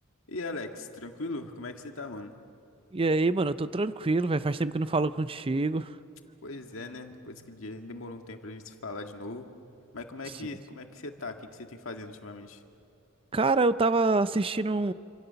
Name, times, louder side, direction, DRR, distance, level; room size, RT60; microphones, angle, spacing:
voice 1, 0.3-2.4 6.4-9.5 9.9-12.6, left 2 dB, 70° left, 4 dB, 1.9 m, -39 dB
voice 2, 2.9-5.9 13.3-14.9, right 3 dB, 25° right, 13 dB, 0.5 m, -26 dB
28.0 x 27.5 x 6.9 m, 2.7 s
head